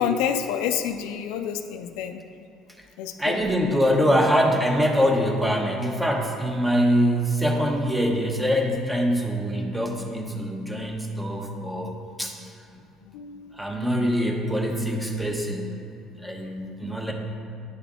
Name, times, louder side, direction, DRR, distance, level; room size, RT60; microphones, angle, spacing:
voice 1, 0.0-2.2 3.0-3.5 13.0-13.6, left 8 dB, 85° left, 7 dB, 0.3 m, -28 dB
voice 2, 3.2-12.3 13.5-15.8 16.2-17.1, equal, 10° right, 1 dB, 0.9 m, -24 dB
9.4 x 3.4 x 3.7 m, 2.6 s
supercardioid pair, 80°, 0 cm